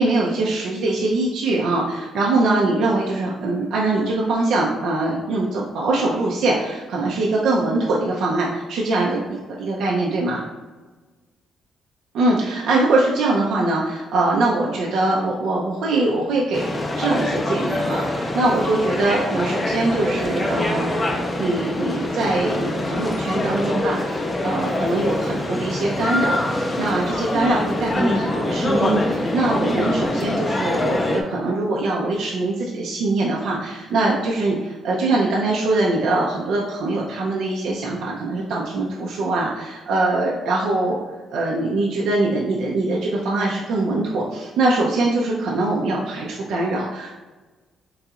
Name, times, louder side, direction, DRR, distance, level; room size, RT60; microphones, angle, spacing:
voice 1, 0.0-10.4 12.1-41.0 41.3-47.1, right 2 dB, 75° right, -3 dB, 0.5 m, -22 dB
sound 1, 16.5-31.2, left 2 dB, 25° left, 0.5 m, -24 dB
3.8 x 2.8 x 2.3 m, 1.3 s
cardioid pair, 90°, 0 cm